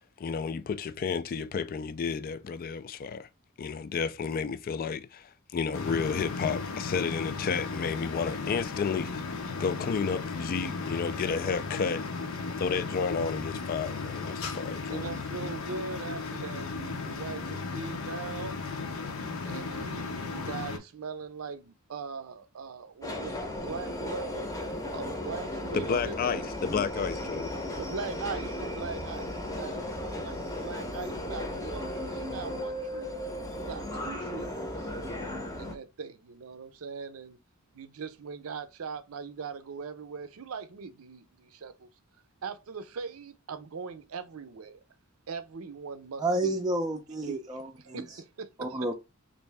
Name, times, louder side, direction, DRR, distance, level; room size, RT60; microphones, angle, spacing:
voice 1, 0.2-3.3 3.6-9.3 9.6-12.0 12.6-15.1 25.7-27.5, left 5 dB, 45° left, 0.3 m, -31 dB
sound 1, 5.7-20.8, left 4 dB, 70° left, 0.7 m, -35 dB
voice 2, 14.9-18.6 19.4-24.6 24.9-26.4 27.7-33.1 33.5-34.9 35.6-37.4 37.7-41.9 42.4-44.8 45.3-46.6 47.2-47.4 47.8-48.9, right 5 dB, 75° right, 0.5 m, -41 dB
Subway metro underground, 23.0-35.8, left 1 dB, 15° left, 0.7 m, -35 dB
voice 3, 46.2-48.0 48.6-48.9, right 2 dB, 20° right, 0.5 m, -30 dB
3.2 x 2.6 x 3.3 m
head